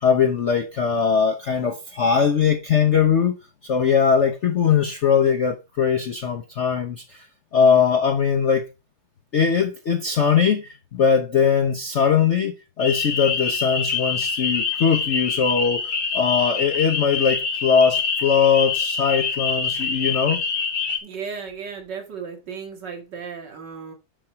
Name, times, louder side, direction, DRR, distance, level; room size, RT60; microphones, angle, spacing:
voice 1, 0.0-3.3 3.6-7.2 7.5-8.7 9.3-20.4, left 6 dB, 55° left, 0.8 m, -20 dB
sound 1, 12.8-21.0, left 5 dB, 75° left, 2.3 m, -25 dB
voice 2, 21.0-23.9, right 6 dB, 60° right, 2.3 m, -35 dB
6.8 x 4.4 x 5.6 m
omnidirectional pair, 2.1 m